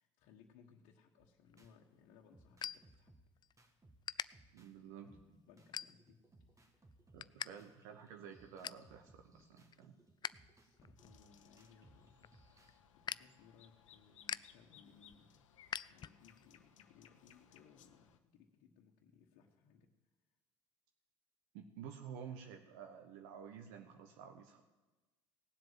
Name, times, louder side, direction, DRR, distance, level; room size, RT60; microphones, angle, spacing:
voice 1, 0.0-3.2 4.7-6.2 6.6-6.9 7.8-7.9 10.5-19.9, left 6 dB, 65° left, -1 dB, 1.4 m, -65 dB
sound 1, 1.2-1.8 2.3-4.8 5.1-12.8, right 2 dB, 20° right, 1.9 m, -66 dB
sound 2, 1.5-3.5 3.8-4.3 4.8-5.1 5.6-6.3 6.7-7.5 7.8-7.9 8.3-8.9 9.4-10.3 10.7-16.5, left 8 dB, 30° left, 0.4 m, -46 dB
voice 2, 4.5-5.1 7.1-9.9 21.5-24.6, right 7 dB, 70° right, 5 dB, 1.2 m, -51 dB
sound 3, 11.0-18.2, left 9 dB, 85° left, 0.9 m, -65 dB
18.0 x 7.8 x 7.5 m, 1.2 s
hypercardioid pair, 65°, 16 cm